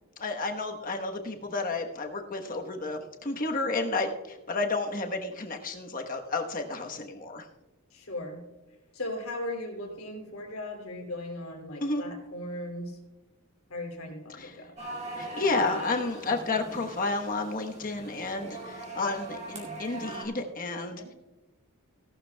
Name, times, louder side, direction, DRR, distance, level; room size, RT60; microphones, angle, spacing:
voice 1, 0.2-7.4 11.8-12.0 14.4-14.5 15.2-21.1, left 3 dB, 40° left, 3 dB, 1.2 m, -31 dB
voice 2, 7.9-8.4 8.9-13.0 13.7-14.8 20.9-21.1, left 1 dB, 75° left, 2 dB, 2.7 m, -38 dB
sound 1, 14.8-20.3, right 2 dB, 30° right, 2.4 m, -40 dB
17.0 x 12.0 x 2.3 m, 1.1 s
head